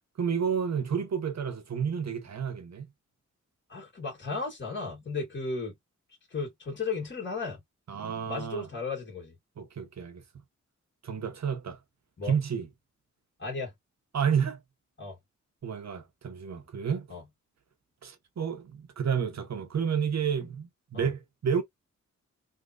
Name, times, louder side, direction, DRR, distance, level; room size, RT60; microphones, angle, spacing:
voice 1, 0.2-2.9 7.9-8.7 9.6-10.2 11.0-11.8 12.2-12.7 14.1-14.6 15.6-17.2 18.0-21.6, right 7 dB, 60° right, 1.0 m, -30 dB
voice 2, 3.7-5.7 6.3-7.6 8.3-9.3 12.2-12.3 13.4-13.7 15.0-15.2 17.1-17.2 20.9-21.1, left 4 dB, 40° left, 2.0 m, -34 dB
3.7 x 2.9 x 2.5 m
wide cardioid pair, 140°, 31 cm